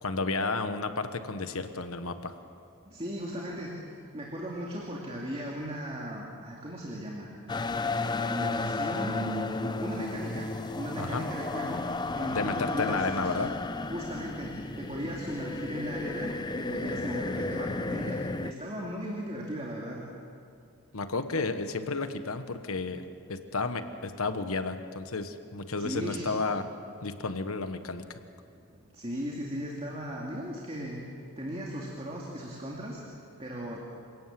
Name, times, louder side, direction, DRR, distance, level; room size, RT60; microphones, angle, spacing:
voice 1, 0.0-2.3 11.0-11.3 12.3-13.6 20.9-26.7 27.0-28.2, left 3 dB, 75° left, 9 dB, 1.2 m, -32 dB
voice 2, 2.8-3.7 4.1-7.3 8.2-10.5 10.7-11.8 12.1-13.1 13.9-16.3 16.6-20.0 25.8-26.3 28.4-31.0 31.4-33.0 33.4-33.8, equal, 25° right, -2 dB, 2.4 m, -37 dB
sound 1, 7.5-18.5, left 3 dB, 20° left, 0.5 m, -33 dB
28.0 x 17.5 x 7.6 m, 2.4 s
head